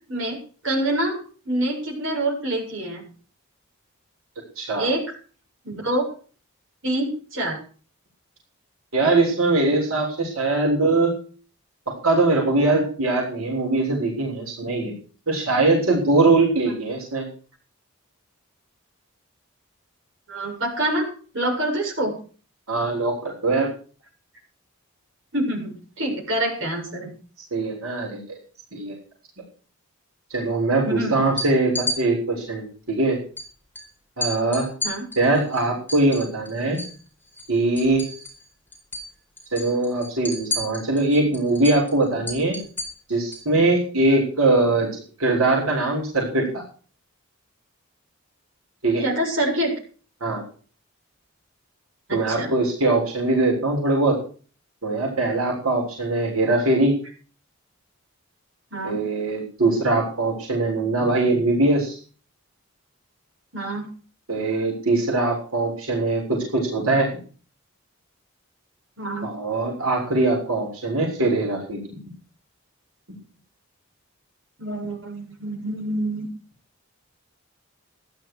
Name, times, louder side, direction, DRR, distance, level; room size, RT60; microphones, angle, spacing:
voice 1, 0.1-1.2 1.4-3.1 4.8-5.2 5.6-6.0 6.8-7.6 20.3-21.1 21.3-22.2 25.3-27.1 30.9-31.2 34.8-35.0 49.0-49.8 52.1-52.5 58.7-59.0 63.5-63.9 69.0-69.3 74.6-76.3, right 1 dB, 60° right, -2 dB, 7.7 m, -26 dB
voice 2, 4.6-4.9 8.9-11.1 11.9-14.9 15.3-17.3 22.7-23.7 27.5-28.4 28.7-29.0 30.3-33.2 34.2-34.7 35.2-36.8 37.5-38.0 39.5-42.6 43.1-46.5 48.8-49.0 50.2-50.4 52.1-54.2 54.8-56.9 58.8-62.0 64.3-67.1 69.2-71.8, right 2 dB, 80° right, -2 dB, 6.8 m, -22 dB
sound 1, 31.2-32.0 33.4-33.5 33.7-33.9 34.2-37.0 37.3-38.5 38.7-39.1 39.4-43.5, left 1 dB, 10° left, 4.3 m, -31 dB
15.5 x 13.0 x 4.8 m, 0.41 s
head